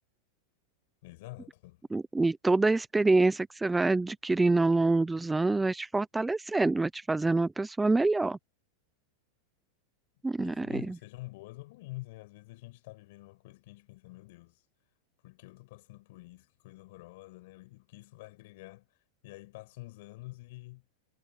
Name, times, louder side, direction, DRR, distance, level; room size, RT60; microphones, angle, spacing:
voice 1, 1.0-1.8 10.4-14.5 15.2-18.8 19.2-20.8, left 21 dB, 60° left, 6.6 m, -47 dB
voice 2, 1.9-8.4 10.2-11.0, right 3 dB, 5° right, 0.6 m, -26 dB
supercardioid pair, 145°, 0 cm